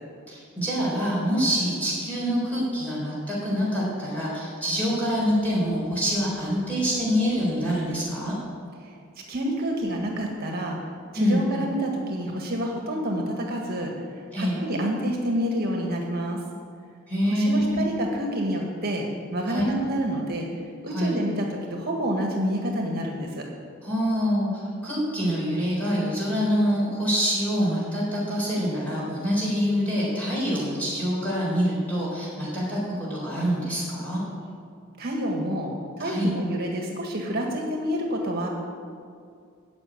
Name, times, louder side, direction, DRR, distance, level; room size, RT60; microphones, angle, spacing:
voice 1, 0.3-8.3 11.1-11.4 14.3-14.6 17.1-17.8 19.5-19.7 20.9-21.2 23.8-34.2 36.0-36.3, equal, 10° left, -7 dB, 4.0 m, -25 dB
voice 2, 9.3-10.8 11.1-13.9 14.4-16.4 17.3-19.0 19.3-20.5 20.8-23.4 35.0-38.5, equal, 50° right, 0 dB, 1.7 m, -28 dB
10.5 x 7.4 x 9.5 m, 2.3 s
head